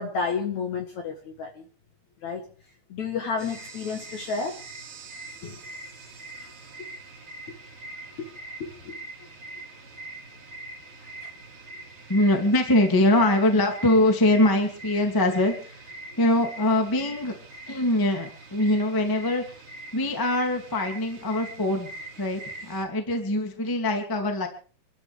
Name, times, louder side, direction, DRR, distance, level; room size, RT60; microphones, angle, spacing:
voice 1, 0.0-1.6 2.2-2.4 2.9-4.6 5.4-5.6 8.6-9.0, left 5 dB, 55° left, 3 dB, 2.3 m, -31 dB
sound 1, 3.4-22.8, right 2 dB, 35° right, 3.3 m, -43 dB
voice 2, 12.1-15.9 16.2-17.3 17.7-19.4 19.9-21.9 22.2-24.5, left 1 dB, 10° left, 3 dB, 1.4 m, -23 dB
27.0 x 13.0 x 3.5 m, 0.40 s
omnidirectional pair, 5.0 m